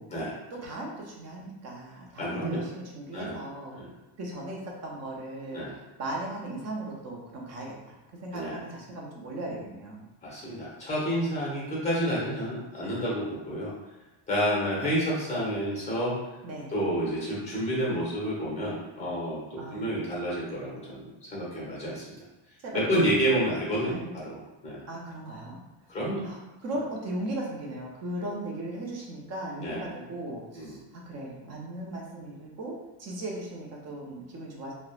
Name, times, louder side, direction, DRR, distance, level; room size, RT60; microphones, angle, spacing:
voice 1, 0.5-3.8 4.2-10.0 16.4-16.7 19.6-19.8 21.8-21.9 22.6-23.1 23.3-23.4 23.9-24.2 24.9-25.6 26.2-34.7, right 1 dB, 35° right, -2 dB, 0.5 m, -37 dB
voice 2, 2.2-2.6 3.1-3.4 3.7-3.9 5.5-5.7 8.3-8.6 10.2-13.7 14.3-16.2 16.7-22.1 22.7-24.8 25.9-26.3 29.6-29.8 30.5-30.8, equal, 15° left, -6 dB, 0.8 m, -29 dB
2.9 x 2.1 x 2.3 m, 1.0 s
cardioid pair, 145°, 47 cm